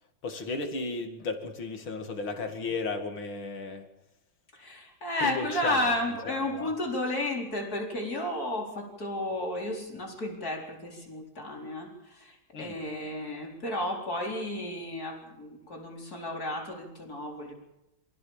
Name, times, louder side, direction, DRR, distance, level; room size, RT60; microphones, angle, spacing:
voice 1, 0.2-3.9 5.2-5.9 6.3-6.7 12.5-12.8, left 3 dB, 90° left, 5 dB, 3.2 m, -34 dB
voice 2, 4.5-17.5, left 1 dB, 50° left, 0 dB, 4.8 m, -33 dB
25.5 x 16.5 x 7.3 m, 0.92 s
omnidirectional pair, 2.1 m